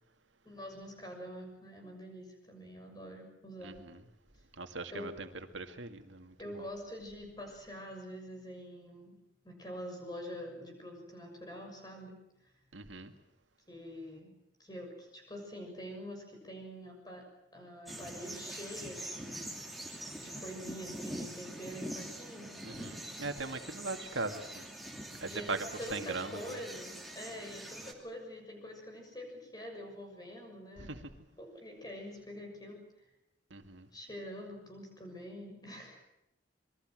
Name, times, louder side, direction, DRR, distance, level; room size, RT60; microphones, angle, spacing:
voice 1, 0.4-3.8 4.9-5.1 6.4-9.1 9.4-12.2 13.7-14.3 14.6-17.2 17.5-19.4 20.1-22.5 25.3-25.5 25.8-31.0 31.4-32.8 33.9-36.0, equal, 20° left, 2 dB, 6.7 m, -45 dB
voice 2, 3.6-4.0 4.6-6.6 12.7-13.1 22.6-24.7 25.2-26.6 30.8-31.1 33.5-33.9, right 3 dB, 85° right, 6 dB, 2.1 m, -40 dB
sound 1, 17.9-27.9, right 1 dB, ahead, 2.7 m, -44 dB
26.5 x 22.5 x 7.7 m, 0.83 s
head